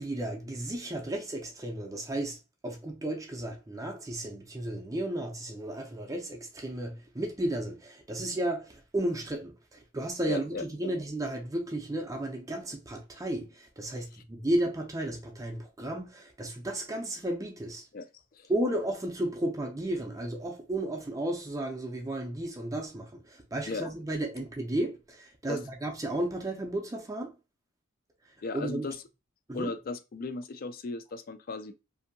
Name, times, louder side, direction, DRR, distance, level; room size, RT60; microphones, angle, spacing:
voice 1, 0.0-2.4 2.6-17.8 18.5-27.3 28.5-28.9 29.5-29.7, right 1 dB, 15° right, 0.5 m, -33 dB
voice 2, 10.2-10.9 17.9-18.1 18.4-18.5 23.7-23.9 25.5-25.6 28.4-29.0 29.5-31.7, left 3 dB, 45° left, 0.3 m, -36 dB
2.6 x 2.6 x 2.6 m
head